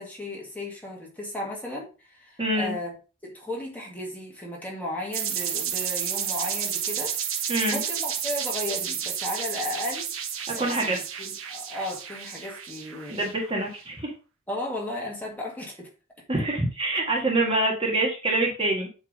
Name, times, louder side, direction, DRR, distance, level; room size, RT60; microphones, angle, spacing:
voice 1, 0.0-2.9 3.2-10.1 10.6-13.3 14.5-15.9, left 1 dB, 10° left, -3 dB, 1.8 m, -35 dB
voice 2, 2.4-2.7 7.5-7.8 10.5-11.0 13.1-14.1 16.3-18.9, right 1 dB, 25° right, -1 dB, 1.7 m, -25 dB
sound 1, 5.1-13.7, right 8 dB, 90° right, 1.1 m, -31 dB
7.9 x 3.6 x 5.1 m, 0.34 s
head